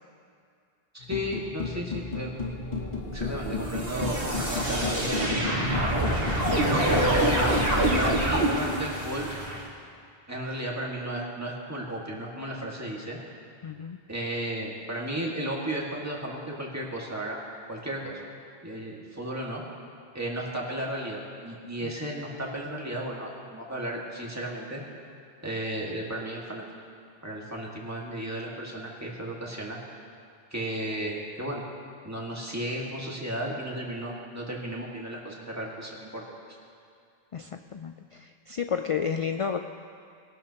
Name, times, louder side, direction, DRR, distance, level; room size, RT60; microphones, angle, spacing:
voice 1, 0.9-2.3 3.1-5.5 6.7-7.6 8.0-9.3 10.3-13.2 14.1-17.4 17.7-18.2 18.6-19.6 20.1-24.8 25.4-26.6 27.2-29.8 30.5-31.6 32.0-36.2, right 1 dB, 15° right, -3 dB, 1.9 m, -34 dB
sound 1, 1.0-6.6, left 4 dB, 45° left, 1.3 m, -34 dB
sound 2, 2.5-9.6, right 1 dB, 65° right, 2.3 m, -26 dB
voice 2, 13.6-14.0 21.8-21.9 37.3-39.6, left 7 dB, 60° left, 7 dB, 0.3 m, -31 dB
21.5 x 12.0 x 2.9 m, 2.3 s
omnidirectional pair, 1.1 m